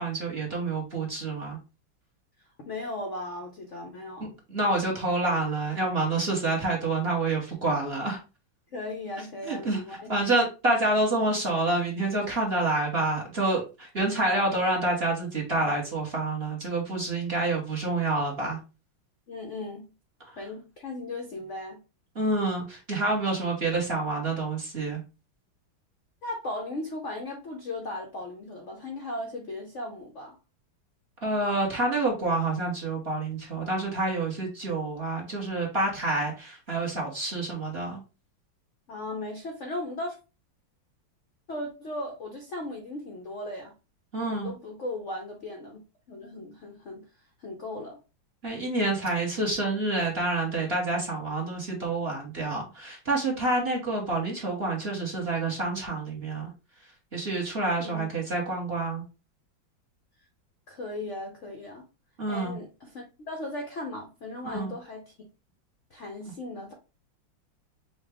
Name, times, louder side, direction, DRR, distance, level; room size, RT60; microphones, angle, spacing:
voice 1, 0.0-1.6 4.5-8.2 9.4-18.6 22.1-25.0 31.2-38.0 44.1-44.5 48.4-56.5 57.1-59.0 62.2-62.6 64.4-64.7, right 2 dB, 35° right, 1.3 m, -28 dB
voice 2, 2.7-4.3 8.7-10.4 19.3-19.9 20.4-21.8 26.2-30.3 38.9-40.2 41.5-43.7 44.3-45.8 46.1-47.0 47.4-48.0 57.8-58.1 60.7-61.8 62.3-65.1 65.9-66.7, left 2 dB, 55° left, 0.8 m, -37 dB
5.5 x 2.4 x 3.4 m
omnidirectional pair, 2.1 m